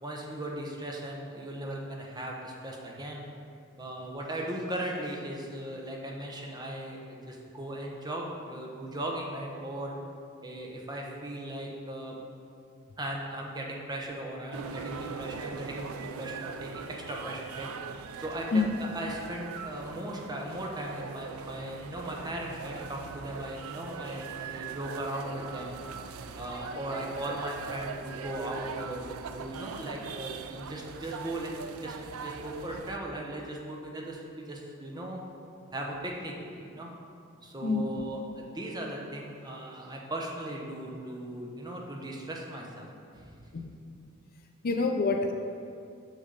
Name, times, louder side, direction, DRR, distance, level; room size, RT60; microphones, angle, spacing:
voice 1, 0.0-3.3 3.7-9.9 10.4-12.2 13.0-17.7 18.2-25.8 26.3-35.2 35.7-36.9 37.4-43.3 45.2-45.3, right 1 dB, 20° right, -1 dB, 0.8 m, -38 dB
sound 1, 14.5-33.0, right 6 dB, 75° right, 0.4 m, -41 dB
voice 2, 37.6-38.0 43.5-43.7 44.6-45.3, left 3 dB, 45° left, 4 dB, 0.4 m, -27 dB
6.4 x 6.3 x 4.0 m, 2.4 s
head